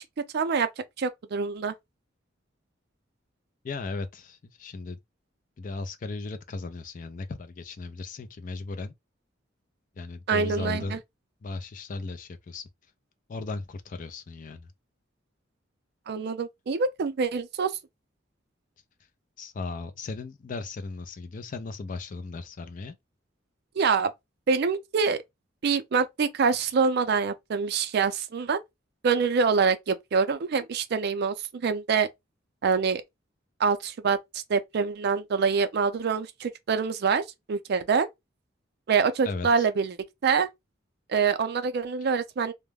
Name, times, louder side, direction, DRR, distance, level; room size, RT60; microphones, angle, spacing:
voice 1, 0.3-0.7 1.0-1.7 10.3-11.0 16.1-17.7 23.8-24.1 24.5-25.2 25.6-28.6 29.0-32.1 32.6-33.0 33.6-37.2 37.5-38.1 38.9-40.0 40.2-40.5 41.1-42.5, right 5 dB, 55° right, 0.4 m, -25 dB
voice 2, 3.6-5.0 5.6-8.9 10.0-11.0 11.4-12.7 13.3-14.7 19.4-23.0 39.2-39.7, left 3 dB, 45° left, 0.4 m, -36 dB
2.3 x 2.1 x 3.2 m
head